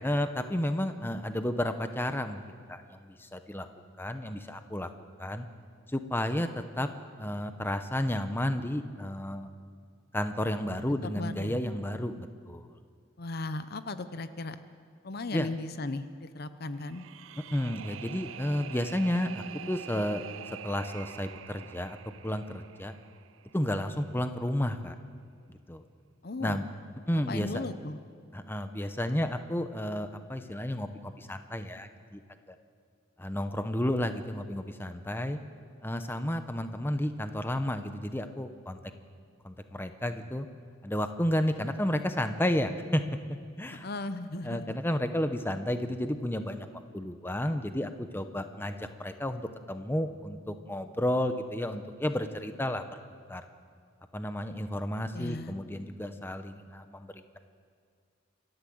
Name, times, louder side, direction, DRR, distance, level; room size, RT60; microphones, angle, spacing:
voice 1, 0.0-2.4 2.7-3.7 4.0-4.9 5.2-5.5 5.9-6.9 7.2-9.5 10.1-12.7 15.3-15.5 17.5-20.2 20.6-22.0 22.2-22.9 23.5-24.9 25.7-25.8 26.4-26.6 27.1-27.6 28.3-32.2 32.5-32.6 33.2-35.4 35.8-38.8 39.4-40.5 40.8-43.0 43.6-43.9 44.4-46.7 46.9-49.4 49.7-52.9 53.3-53.4 54.1-57.4, left 1 dB, 10° left, 8 dB, 0.8 m, -32 dB
voice 2, 11.0-11.6 13.2-14.6 15.0-17.1 26.2-26.6 27.1-28.0 43.8-44.8 55.1-55.6, left 2 dB, 50° left, 11 dB, 0.8 m, -37 dB
sound 1, 16.8-23.9, right 9 dB, 75° right, 0.5 m, -46 dB
27.5 x 12.0 x 7.9 m, 2.1 s
head